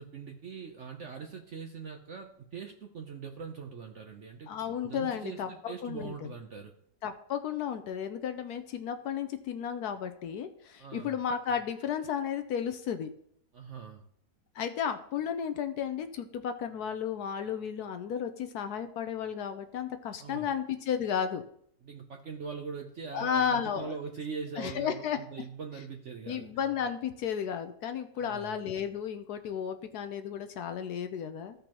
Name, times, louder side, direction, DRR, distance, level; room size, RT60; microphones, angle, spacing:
voice 1, 0.0-4.5 4.8-6.7 10.8-11.2 13.5-14.0 20.2-20.5 21.8-26.5 28.2-28.5, right 5 dB, 60° right, 3 dB, 0.8 m, -42 dB
voice 2, 4.5-6.3 7.0-13.1 14.5-21.4 23.1-23.9 24.6-25.2 26.3-31.5, left 8 dB, 70° left, 8 dB, 1.0 m, -33 dB
15.0 x 5.3 x 2.9 m, 0.68 s
omnidirectional pair, 1.9 m